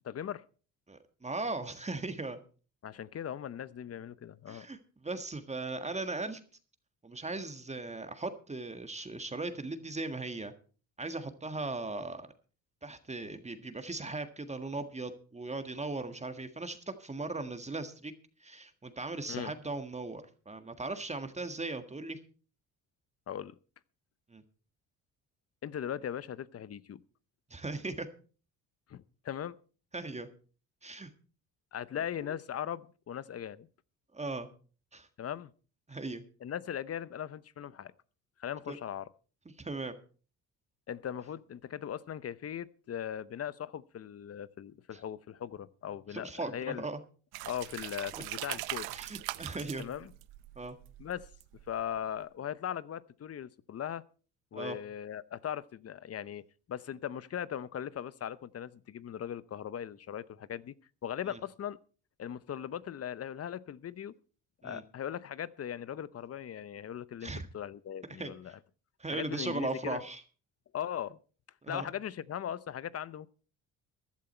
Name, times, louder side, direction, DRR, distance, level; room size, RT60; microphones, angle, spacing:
voice 1, 0.0-0.4 2.8-4.7 19.3-19.5 23.3-23.5 25.6-27.0 28.9-29.5 31.7-33.7 35.2-35.5 36.4-37.9 38.4-39.1 40.9-46.9 47.4-48.9 49.8-50.1 51.0-51.3 51.7-54.0 54.5-56.4 56.7-60.7 61.0-61.8 62.2-64.1 64.6-68.6 69.1-70.0 70.7-71.2 71.7-73.3, left 9 dB, 40° left, 0.7 m, -39 dB
voice 2, 0.9-2.4 4.5-6.4 7.0-10.5 11.0-12.3 12.8-18.1 18.4-22.2 24.3-24.4 27.5-28.1 29.9-30.3 30.8-31.1 32.2-32.3 34.1-34.5 34.9-35.1 35.9-36.2 38.7-38.8 39.6-40.0 44.9-45.0 46.1-47.0 48.1-48.2 48.9-49.8 50.5-50.7 54.5-54.8 61.3-61.4 64.6-64.8 67.2-67.5 68.0-68.6 69.0-70.2 71.6-71.9, right 3 dB, 20° right, 1.7 m, -38 dB
sound 1, 47.3-52.0, right 19 dB, 85° right, 0.7 m, -41 dB
15.0 x 11.5 x 4.4 m
supercardioid pair, 80°, 36 cm